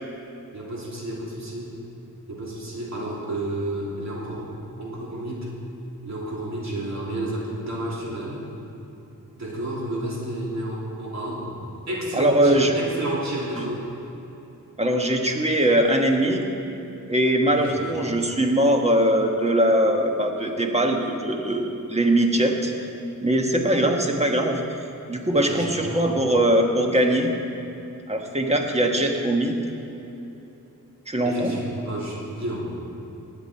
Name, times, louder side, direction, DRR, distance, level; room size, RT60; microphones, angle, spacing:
voice 1, 0.5-1.7 2.3-4.5 4.8-5.5 6.0-8.4 9.4-11.6 11.9-13.8 17.5-18.0 25.3-26.1 31.2-32.7, right 1 dB, 55° right, -5 dB, 3.4 m, -31 dB
voice 2, 12.1-12.8 13.5-13.6 14.8-16.4 17.1-22.7 23.2-24.6 25.1-27.3 28.1-29.6 31.1-31.5, right 1 dB, 20° right, 2 dB, 1.4 m, -21 dB
19.5 x 8.3 x 4.5 m, 3.0 s
wide cardioid pair, 105°, 34 cm